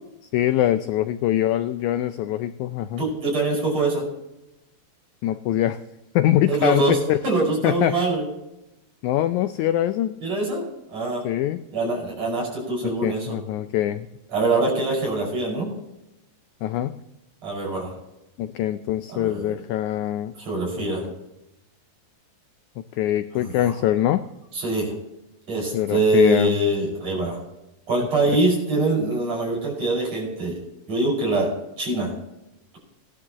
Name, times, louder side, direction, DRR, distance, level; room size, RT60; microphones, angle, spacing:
voice 1, 0.3-3.0 5.2-5.8 6.2-7.2 7.6-8.0 9.0-10.2 11.2-11.6 13.0-14.1 16.6-17.0 18.4-20.3 20.8-21.1 23.0-24.2 25.7-26.6, left 12 dB, 85° left, 11 dB, 1.7 m, -23 dB
voice 2, 3.0-4.0 6.5-7.0 7.2-8.2 10.2-11.2 11.7-13.4 14.3-15.7 17.4-17.9 19.1-19.5 20.4-21.0 23.4-23.5 24.5-24.9 25.5-27.4 27.9-30.6 30.9-31.5 31.8-32.1, right 2 dB, 50° right, -2 dB, 6.7 m, -24 dB
18.0 x 11.5 x 3.0 m, 0.92 s
omnidirectional pair, 3.9 m